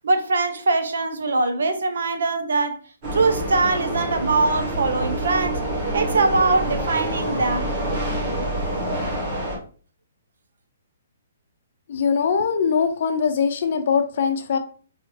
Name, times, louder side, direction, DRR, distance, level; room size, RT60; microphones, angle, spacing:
voice 1, 0.0-2.8 3.1-5.6 5.9-7.7, right 3 dB, 80° right, 0.7 m, -22 dB
sound 1, 3.0-9.6, right 1 dB, 30° right, 1.6 m, -26 dB
voice 2, 11.9-14.6, left 6 dB, 50° left, 0.6 m, -21 dB
4.0 x 2.7 x 3.3 m
hypercardioid pair, 160°, 0 cm